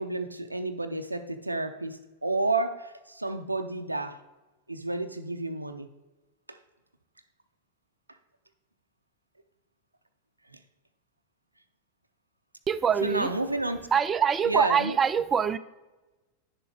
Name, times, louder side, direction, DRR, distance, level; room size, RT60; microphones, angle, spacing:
voice 1, 0.0-4.2 4.7-5.9 6.5-6.6 10.5-10.6 13.0-13.9 14.4-15.0, right 2 dB, 85° right, 8 dB, 0.5 m, -31 dB
voice 2, 12.7-13.3 13.9-15.6, right 7 dB, 20° right, 13 dB, 0.3 m, -24 dB
9.9 x 6.9 x 3.3 m, 1.1 s
figure-of-eight pair, 90°, 0 cm